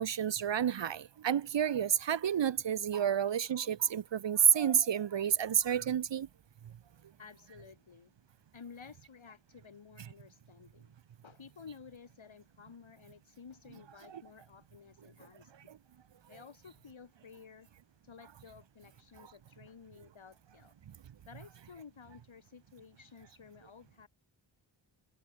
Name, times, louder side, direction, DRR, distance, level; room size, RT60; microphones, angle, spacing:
voice 1, 0.0-6.3 14.1-14.2, right 9 dB, 60° right, 0.9 m, -29 dB
voice 2, 7.0-8.1 8.5-10.9 11.2-15.5 16.3-17.7 18.0-20.7 21.3-24.1, left 6 dB, 70° left, 6.1 m, -54 dB
cardioid pair, 65°, 49 cm